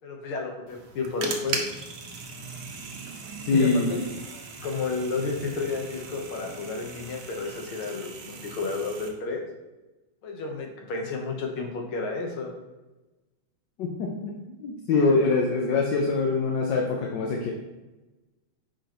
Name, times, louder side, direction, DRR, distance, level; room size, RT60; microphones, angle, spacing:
voice 1, 0.0-1.6 3.5-4.0 4.3-9.4 10.2-12.5, left 4 dB, 85° left, 1 dB, 2.0 m, -31 dB
sound 1, 0.7-9.1, right 4 dB, 65° right, 1.3 m, -38 dB
voice 2, 3.5-4.0 13.8-14.3 14.6-17.5, left 3 dB, 65° left, 0 dB, 1.3 m, -24 dB
9.3 x 5.0 x 3.0 m, 1.1 s
omnidirectional pair, 2.2 m